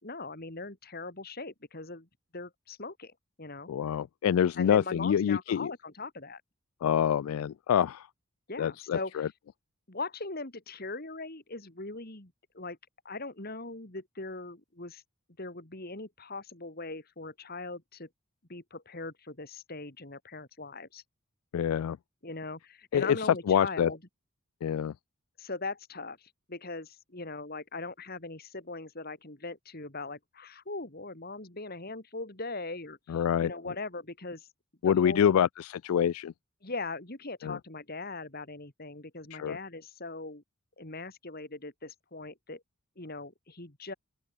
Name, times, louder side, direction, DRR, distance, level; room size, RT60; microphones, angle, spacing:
voice 1, 0.0-2.1 2.3-3.7 4.6-6.4 8.5-9.3 9.9-12.8 13.0-15.0 15.4-18.1 18.5-21.0 22.2-24.0 25.4-34.5 34.8-35.4 36.6-40.4 40.8-42.6 43.0-43.9, left 3 dB, 45° left, 2.6 m, -40 dB
voice 2, 3.7-5.7 6.8-8.1 8.6-9.3 21.5-22.0 22.9-23.2 23.5-23.9 24.6-24.9 33.1-33.5 34.8-36.3 37.4-37.6 39.3-39.6, left 8 dB, 75° left, 0.3 m, -26 dB
open air
head